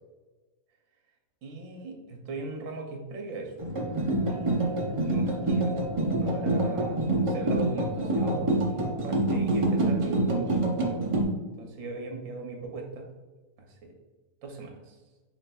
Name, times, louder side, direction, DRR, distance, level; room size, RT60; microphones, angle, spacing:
voice 1, 1.4-3.5 4.3-5.8 6.2-10.6 11.6-13.1 13.6-13.9 14.4-15.0, right 3 dB, 75° right, 2 dB, 1.1 m, -39 dB
sound 1, 3.6-11.2, right 2 dB, 40° right, 0.4 m, -26 dB
7.0 x 3.1 x 2.3 m, 1.2 s
omnidirectional pair, 1.4 m